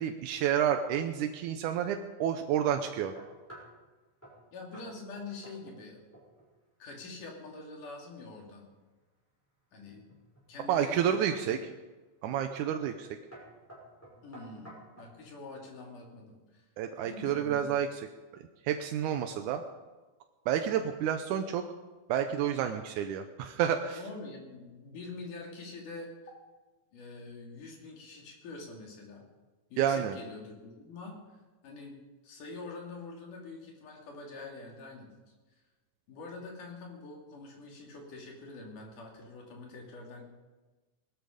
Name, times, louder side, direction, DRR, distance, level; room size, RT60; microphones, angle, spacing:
voice 1, 0.0-3.1 10.7-11.6 12.2-13.1 16.8-17.9 18.3-19.6 20.5-21.6 22.1-24.0 29.8-30.2, right 9 dB, 85° right, 6 dB, 2.2 m, -30 dB
sound 1, 2.9-3.8 4.2-4.4 4.7-4.9 5.2-5.9 6.1-6.5 9.9-10.5 11.1-11.5 12.3-12.6 12.8-13.0 13.3-15.2, right 1 dB, 5° left, 5.9 m, -52 dB
voice 2, 4.5-6.0 6.8-8.7 9.7-10.1 10.5-11.6 14.2-16.7 17.0-17.8 24.0-26.1 26.9-29.2 29.7-35.3 36.1-40.2, left 3 dB, 80° left, 0 dB, 4.4 m, -45 dB
19.5 x 13.0 x 5.2 m, 1.2 s
omnidirectional pair, 3.6 m